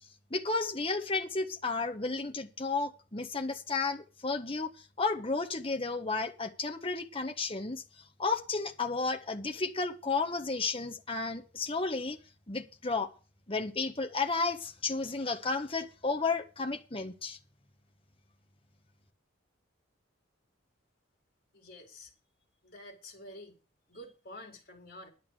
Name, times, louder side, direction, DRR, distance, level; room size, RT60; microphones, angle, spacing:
voice 1, 0.3-7.8 8.2-12.2 12.5-13.1 13.5-17.4, left 3 dB, 30° left, 1.5 m, -32 dB
voice 2, 21.5-22.1 22.6-23.6 23.9-25.1, left 1 dB, 50° left, 4.3 m, -49 dB
11.0 x 8.6 x 6.4 m
head